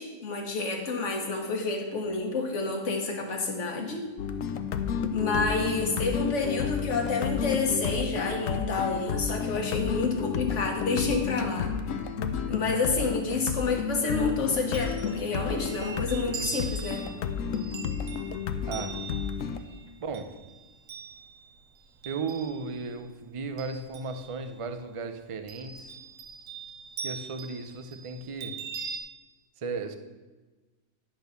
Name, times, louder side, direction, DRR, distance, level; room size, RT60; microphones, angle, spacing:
voice 1, 0.0-4.1 5.1-11.7 12.5-17.1, left 3 dB, 70° left, 3 dB, 1.6 m, -29 dB
sound 1, 4.2-19.6, left 7 dB, 85° left, 1.0 m, -31 dB
Chime, 14.5-23.0 23.3-24.7 25.5-29.0, right 6 dB, 85° right, 1.2 m, -42 dB
voice 2, 18.7-19.0 20.0-20.4 22.0-26.0 27.0-28.6 29.6-30.0, right 4 dB, 35° right, 8 dB, 0.5 m, -35 dB
10.5 x 4.3 x 6.7 m, 1.2 s
omnidirectional pair, 1.3 m